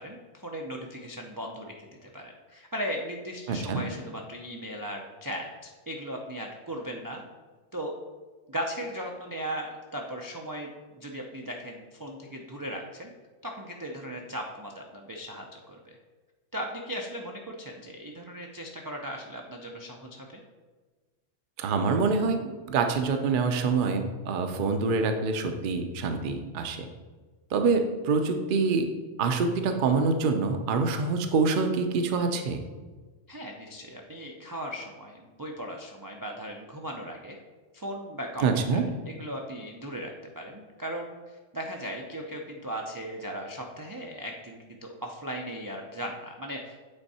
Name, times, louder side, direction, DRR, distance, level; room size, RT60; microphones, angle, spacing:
voice 1, 0.0-7.2 7.7-7.9 8.5-10.7 10.9-13.1 13.4-15.9 16.5-20.4 33.3-37.4 37.7-41.2 41.5-46.8, equal, 30° right, 0 dB, 0.3 m, -37 dB
voice 2, 3.5-3.8 21.6-26.8 27.5-28.9 29.2-32.6 38.4-38.8, right 4 dB, 50° right, 6 dB, 0.7 m, -26 dB
8.7 x 3.6 x 4.2 m, 1.3 s
omnidirectional pair, 1.3 m